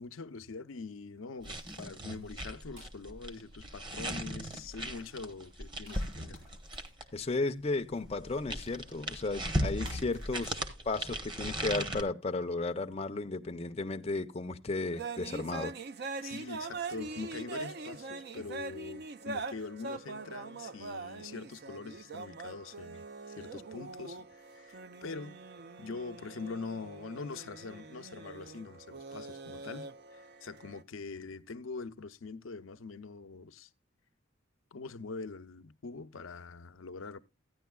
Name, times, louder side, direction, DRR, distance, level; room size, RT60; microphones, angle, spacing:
voice 1, 0.0-6.4 16.2-25.4 25.8-33.7 34.7-37.2, left 4 dB, 80° left, 0.6 m, -44 dB
sound 1, 1.2-11.2, equal, 75° right, 6.3 m, -62 dB
sound 2, 1.4-7.2 8.0-12.0, right 1 dB, 25° right, 1.0 m, -37 dB
voice 2, 7.1-10.6 10.8-15.7, left 3 dB, 30° left, 0.5 m, -34 dB
sound 3, 14.9-30.8, right 3 dB, 55° right, 0.5 m, -43 dB
14.5 x 10.0 x 2.2 m
head